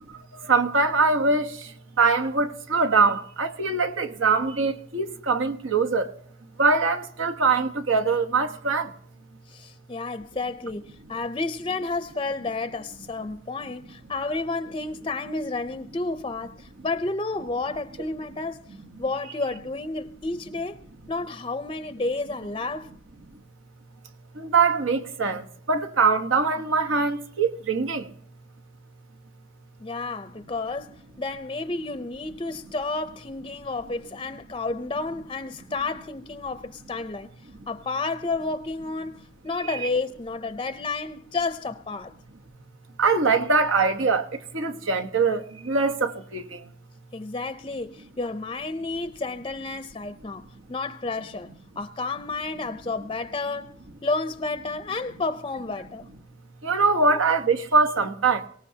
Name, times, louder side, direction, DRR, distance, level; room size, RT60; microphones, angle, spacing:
voice 1, 0.3-6.1 6.6-8.9 24.3-28.1 39.7-39.8 43.0-46.7 56.6-58.5, right 4 dB, 90° right, 1.2 m, -23 dB
voice 2, 9.5-18.6 19.0-22.9 29.8-37.3 37.7-42.1 47.1-53.7 54.0-56.1 57.1-57.2, left 3 dB, 25° left, 0.5 m, -31 dB
23.5 x 18.5 x 2.8 m
head